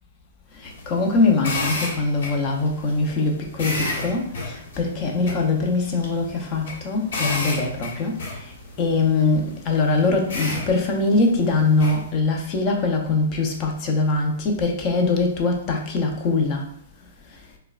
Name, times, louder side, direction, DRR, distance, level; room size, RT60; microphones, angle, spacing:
sound 1, 0.6-12.1, left 2 dB, 65° left, 1.2 m, -33 dB
voice 1, 0.6-8.5 8.8-16.6, left 3 dB, 30° left, 1 dB, 0.7 m, -22 dB
4.5 x 2.2 x 2.4 m, 0.65 s
hypercardioid pair, 150°, 0 cm